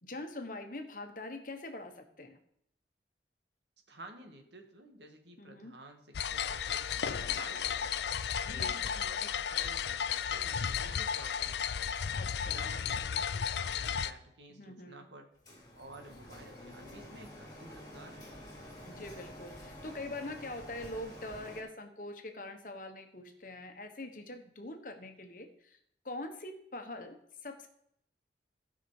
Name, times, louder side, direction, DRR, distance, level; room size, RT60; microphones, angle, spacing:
voice 1, 0.0-2.4 5.4-5.7 8.5-8.8 12.1-12.7 14.5-15.0 18.8-25.8 26.0-27.2 27.4-27.7, left 2 dB, 50° left, 6 dB, 1.2 m, -43 dB
voice 2, 3.9-11.9 12.3-15.3 15.7-18.3, right 1 dB, 85° right, 5 dB, 1.7 m, -53 dB
sound 1, 6.1-14.1, left 8 dB, 75° left, 0.5 m, -34 dB
Printer, 15.4-21.6, left 1 dB, 20° left, 2.8 m, -49 dB
15.5 x 5.7 x 4.8 m, 0.71 s
head